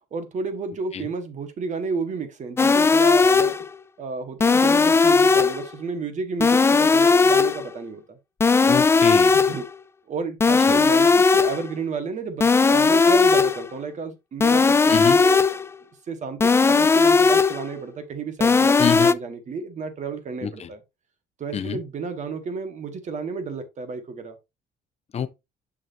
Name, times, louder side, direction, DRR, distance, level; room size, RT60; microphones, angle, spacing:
voice 1, 0.1-3.5 4.0-8.2 9.3-9.7 10.1-15.4 16.1-20.8 21.4-24.4, right 4 dB, 45° right, 1.6 m, -32 dB
sound 1, 2.6-3.7 4.4-5.7 6.4-7.7 8.4-9.7 10.4-11.7 12.4-13.7 14.4-15.7 16.4-17.7 18.4-19.1, left 4 dB, 15° left, 0.3 m, -17 dB
voice 2, 8.6-9.4 10.7-10.8 14.9-15.2 18.8-19.1 20.4-20.7 21.5-21.8 25.1-25.3, left 8 dB, 40° left, 0.9 m, -26 dB
6.7 x 6.2 x 2.8 m
cardioid pair, 110°, 17 cm